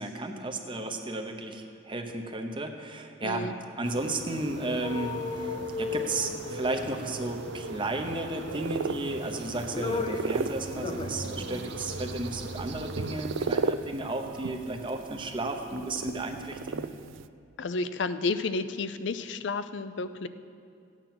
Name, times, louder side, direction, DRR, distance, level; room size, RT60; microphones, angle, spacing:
voice 1, 0.0-16.8, right 2 dB, 25° right, 5 dB, 0.9 m, -33 dB
voice 2, 3.2-3.5 17.6-20.3, left 3 dB, 70° left, 13 dB, 0.5 m, -31 dB
sound 1, 3.8-13.7, right 2 dB, 65° right, 0.7 m, -40 dB
sound 2, 4.8-7.4 8.6-9.2 9.5-10.4 10.7-11.2 11.6-11.7, left 4 dB, 30° left, 0.7 m, -35 dB
sound 3, 8.5-17.3, right 5 dB, 90° right, 0.4 m, -36 dB
15.0 x 9.0 x 5.9 m, 2.4 s
head